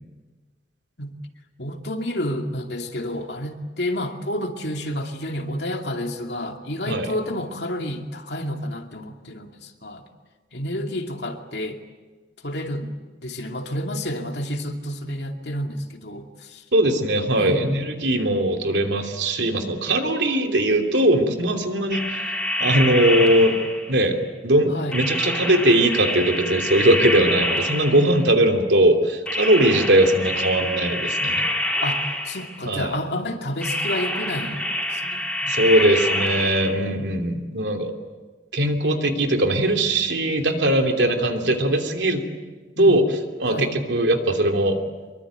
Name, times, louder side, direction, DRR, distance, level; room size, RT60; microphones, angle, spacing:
voice 1, 1.6-10.0 10.5-11.8 12.4-12.9 13.2-16.6 17.4-17.6 24.7-25.0 28.0-28.2 31.8-35.8 41.4-41.7 42.8-43.0 43.5-43.7, left 1 dB, 70° left, 4 dB, 2.5 m, -30 dB
voice 2, 16.7-22.2 22.6-23.5 23.9-24.2 24.4-31.4 32.6-33.0 35.5-37.9 38.5-42.2 42.8-43.0 43.4-44.8, right 1 dB, 80° right, 4 dB, 3.0 m, -20 dB
sound 1, 21.9-24.0 24.9-28.3 29.3-32.6 33.6-36.7, left 1 dB, 5° left, 4.2 m, -26 dB
24.5 x 23.0 x 9.1 m, 1.3 s
head